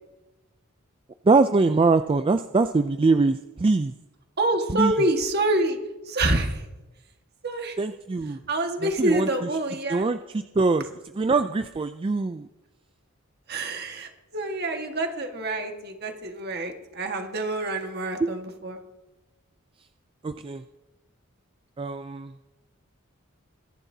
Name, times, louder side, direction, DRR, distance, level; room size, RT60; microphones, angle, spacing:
voice 1, 1.3-3.9 4.7-4.9 7.8-8.4 8.8-9.5 9.9-10.9 11.1-12.5 18.2-18.3 20.2-20.6 21.8-22.3, right 3 dB, 25° right, 9 dB, 0.3 m, -23 dB
voice 2, 4.4-5.8 6.1-6.6 7.4-7.8 8.5-10.1 13.5-18.8, right 2 dB, 50° right, 4 dB, 1.7 m, -27 dB
23.5 x 11.0 x 2.8 m, 1.0 s
head